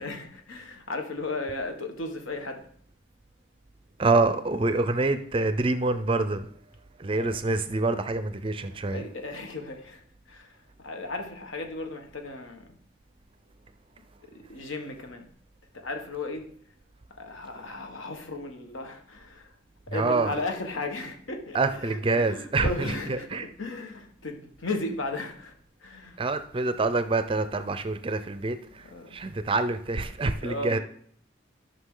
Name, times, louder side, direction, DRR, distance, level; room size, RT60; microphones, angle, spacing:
voice 1, 0.0-2.7 7.1-7.3 8.8-12.8 14.2-15.3 15.7-16.5 17.2-19.5 19.9-25.5 25.8-26.2 28.8-29.2 30.4-30.8, left 2 dB, 80° left, 1.4 m, -35 dB
voice 2, 4.0-6.5 7.0-9.0 19.9-20.4 21.5-23.5 26.2-28.8 29.1-30.8, right 3 dB, 25° right, 0.4 m, -26 dB
13.0 x 5.8 x 3.8 m
head